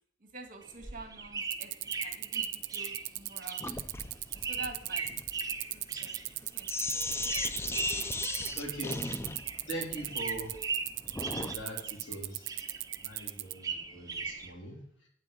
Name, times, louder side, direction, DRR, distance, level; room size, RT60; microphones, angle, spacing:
voice 1, 0.2-1.7 2.0-3.9 4.3-5.1 5.7-6.1 6.5-7.0, right 3 dB, 45° right, 5 dB, 1.9 m, -47 dB
sound 1, 0.6-9.7 9.9-12.2 12.4-14.5, right 4 dB, 20° right, 1.1 m, -39 dB
sound 2, 1.5-13.5, right 19 dB, 75° right, 0.4 m, -36 dB
Sink (filling or washing), 3.6-11.6, left 3 dB, 15° left, 0.4 m, -38 dB
voice 2, 8.2-9.0 9.7-10.5 11.3-12.5 13.0-15.1, right 1 dB, 75° left, 0 dB, 3.5 m, -42 dB
8.4 x 8.1 x 6.9 m, 0.65 s
head